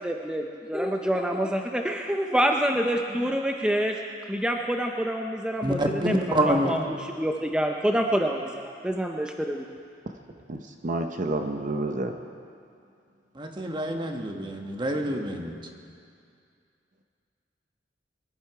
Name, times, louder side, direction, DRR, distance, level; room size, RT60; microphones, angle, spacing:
voice 1, 0.0-4.0 4.3-9.6, equal, 5° right, 2 dB, 0.5 m, -27 dB
voice 2, 5.6-6.7 13.3-15.5, right 1 dB, 25° right, 3 dB, 1.2 m, -27 dB
voice 3, 10.5-12.1, right 2 dB, 45° right, 5 dB, 0.7 m, -29 dB
22.5 x 10.5 x 4.7 m, 2.4 s
head